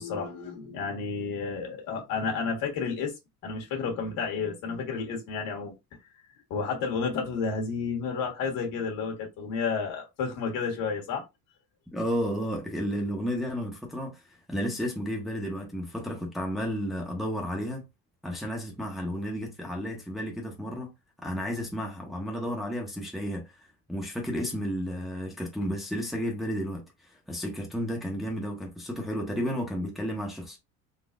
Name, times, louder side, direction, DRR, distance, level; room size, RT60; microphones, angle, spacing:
voice 1, 0.0-3.1 3.4-5.7 6.5-11.2, left 5 dB, 65° left, 1.5 m, -31 dB
voice 2, 11.9-14.2 14.5-17.8 18.2-20.9 21.2-23.4 23.9-26.8 27.3-30.6, equal, ahead, 0.8 m, -32 dB
3.9 x 2.3 x 2.4 m
cardioid pair, 120°, 35 cm